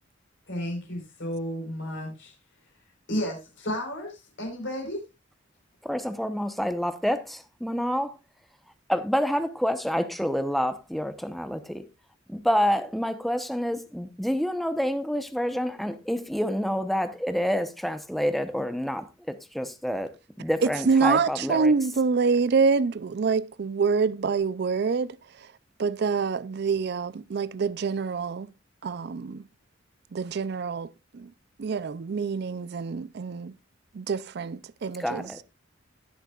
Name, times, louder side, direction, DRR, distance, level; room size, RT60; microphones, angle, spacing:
voice 1, 0.5-2.3 3.1-5.0, equal, 70° left, 4.3 m, -32 dB
voice 2, 5.8-8.2 8.9-11.9 12.3-21.7 35.0-35.4, equal, ahead, 0.8 m, -28 dB
voice 3, 20.9-25.2 25.8-28.5 28.8-29.4 30.1-30.9 31.1-31.3 31.6-33.5 33.9-35.3, right 5 dB, 55° right, 0.4 m, -26 dB
19.5 x 6.7 x 2.4 m
head